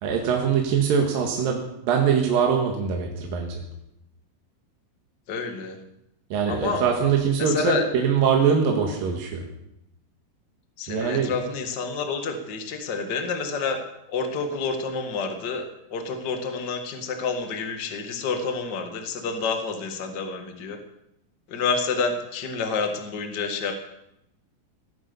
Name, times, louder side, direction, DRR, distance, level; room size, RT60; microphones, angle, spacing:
voice 1, 0.0-1.6 1.9-3.5 6.3-9.4 10.9-11.3, right 7 dB, 70° right, 1 dB, 3.4 m, -22 dB
voice 2, 5.3-5.8 6.5-6.8 7.4-7.8 10.8-13.8 14.1-15.6 15.9-20.8 21.5-23.7, left 4 dB, 35° left, 5 dB, 1.9 m, -28 dB
18.5 x 11.0 x 7.1 m, 0.82 s
omnidirectional pair, 4.2 m